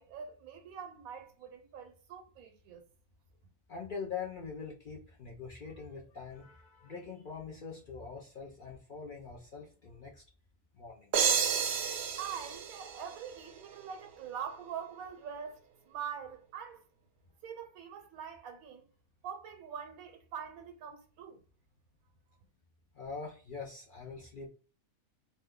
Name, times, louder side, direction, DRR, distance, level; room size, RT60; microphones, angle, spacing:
voice 1, 0.0-2.8 12.2-16.8 17.4-18.9 19.2-21.4, right 8 dB, 80° right, 1.0 m, -44 dB
voice 2, 3.7-10.2 10.8-11.1 22.9-24.5, left 5 dB, 65° left, 0.5 m, -43 dB
sound 1, 11.1-13.8, right 7 dB, 65° right, 0.7 m, -31 dB
2.6 x 2.2 x 3.5 m
omnidirectional pair, 1.5 m